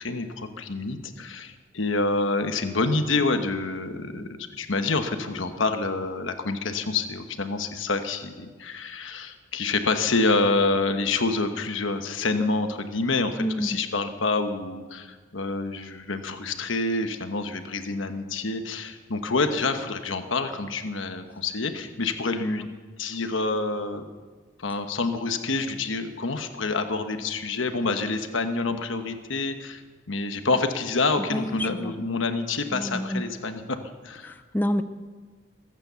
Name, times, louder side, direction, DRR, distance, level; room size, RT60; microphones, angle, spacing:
voice 1, 0.0-22.7 23.0-24.1 24.6-29.8 30.1-33.8 34.0-34.4, left 3 dB, 80° left, 7 dB, 1.2 m, -27 dB
voice 2, 13.4-13.8 22.4-22.6 31.3-31.9 32.7-33.2 34.5-34.8, equal, 10° left, 9 dB, 0.5 m, -28 dB
21.5 x 9.0 x 7.0 m, 1.4 s
head